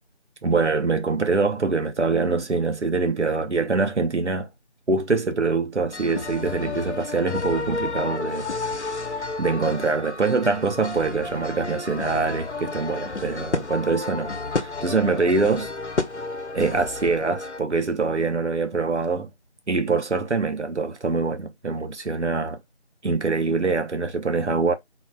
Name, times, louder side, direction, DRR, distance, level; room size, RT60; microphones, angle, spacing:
voice 1, 0.4-4.5 4.9-8.5 9.2-14.3 14.6-15.7 16.5-19.3 19.7-22.6 23.0-24.7, right 4 dB, 90° right, 0.9 m, -24 dB
sound 1, 5.9-17.6, left 3 dB, 85° left, 0.9 m, -31 dB
4.1 x 2.2 x 3.7 m
figure-of-eight pair, 180°, 34 cm